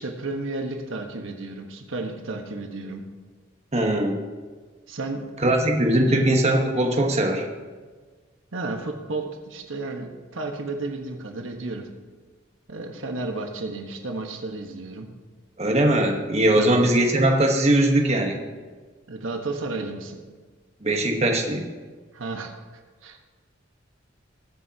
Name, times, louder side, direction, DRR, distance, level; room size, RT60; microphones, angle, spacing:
voice 1, 0.0-3.0 4.9-5.2 8.5-11.9 12.7-15.1 16.6-16.9 19.1-20.2 22.1-22.5 23.0-23.2, right 2 dB, 90° right, 3 dB, 1.3 m, -32 dB
voice 2, 3.7-4.2 5.4-7.5 15.6-18.4 20.8-21.6, right 1 dB, 35° right, 2 dB, 1.2 m, -20 dB
20.0 x 7.8 x 2.8 m, 1.4 s
head